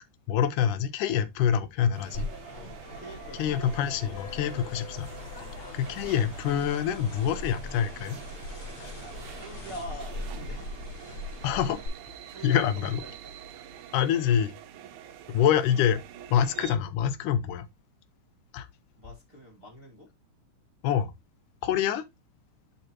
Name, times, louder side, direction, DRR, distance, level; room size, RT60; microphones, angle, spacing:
voice 1, 0.3-2.3 3.4-5.1 5.7-8.2 11.4-11.8 12.4-13.0 13.9-14.5 15.3-16.0 16.3-17.7 18.5-18.7 20.8-21.1 21.6-22.1, left 9 dB, 85° left, 2.2 m, -26 dB
sound 1, 1.9-16.8, right 10 dB, 75° right, 2.1 m, -46 dB
sound 2, 2.1-11.9, left 2 dB, 55° left, 3.8 m, -40 dB
voice 2, 2.5-4.2 4.5-4.7 5.4-5.6 9.3-10.6 12.3-13.3 19.0-20.1, right 1 dB, 25° right, 1.6 m, -45 dB
11.5 x 3.8 x 2.9 m
omnidirectional pair, 3.6 m